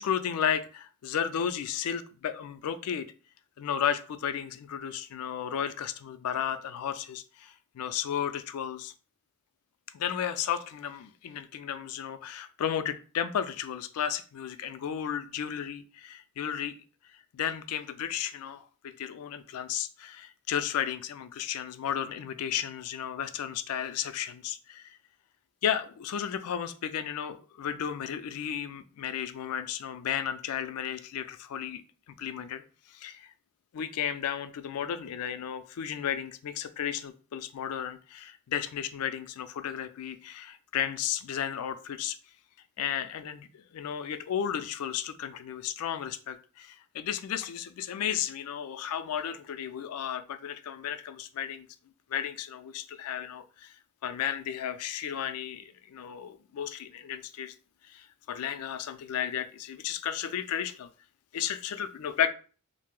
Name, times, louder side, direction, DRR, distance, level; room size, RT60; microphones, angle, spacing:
voice 1, 0.0-3.1 3.6-8.9 9.9-16.7 17.3-25.0 25.6-31.8 32.1-32.6 32.9-33.3 33.7-42.2 42.8-51.7 52.1-53.7 54.0-57.5 57.9-60.9 61.3-62.3, left 9 dB, 85° left, 11 dB, 0.3 m, -33 dB
2.6 x 2.0 x 3.6 m, 0.38 s
head